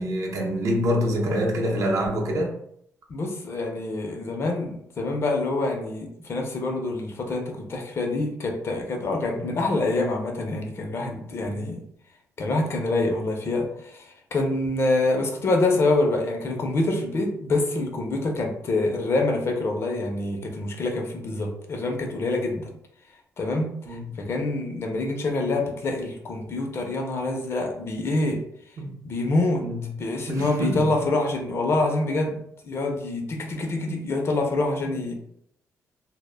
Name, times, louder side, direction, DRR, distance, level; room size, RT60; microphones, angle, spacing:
voice 1, 0.0-2.5 9.3-9.5 11.4-11.6 23.9-24.1 28.8-29.0 29.6-30.0 30.3-30.9 34.8-34.9, equal, 60° right, 0.6 m, -26 dB
voice 2, 3.1-11.8 12.4-22.7 23.4-28.4 29.0-29.6 30.0-32.4 32.7-35.1, left 2 dB, 45° left, 0.5 m, -26 dB
2.1 x 2.0 x 3.2 m
cardioid pair, 100°, 6 cm